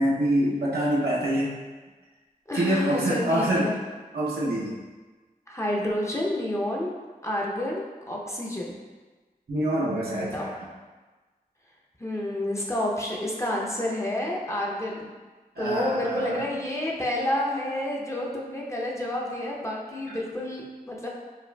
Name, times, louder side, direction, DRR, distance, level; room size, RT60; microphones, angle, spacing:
voice 1, 0.0-1.5 2.5-3.8 4.1-4.7 9.5-10.5 15.6-16.4, right 1 dB, 85° right, -6 dB, 0.7 m, -25 dB
voice 2, 2.5-3.8 5.5-6.9 7.2-8.8 10.1-10.5 12.0-15.1 15.6-21.1, left 1 dB, 20° left, -3 dB, 0.6 m, -29 dB
4.9 x 2.4 x 2.2 m, 1.3 s
wide cardioid pair, 60°, 16 cm